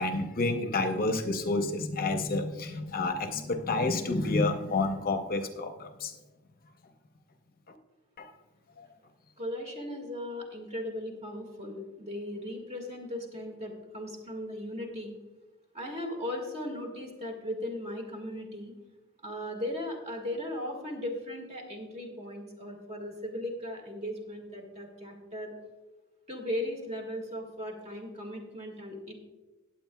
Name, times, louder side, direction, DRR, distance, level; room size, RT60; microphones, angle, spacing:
voice 1, 0.0-6.1 7.7-7.8 8.2-8.3 8.8-8.9, left 2 dB, 45° left, 6 dB, 0.7 m, -29 dB
voice 2, 9.4-15.1 15.7-18.7 19.2-25.5 26.3-29.1, left 1 dB, 30° right, 2 dB, 1.9 m, -37 dB
18.0 x 7.9 x 2.3 m, 1.2 s
head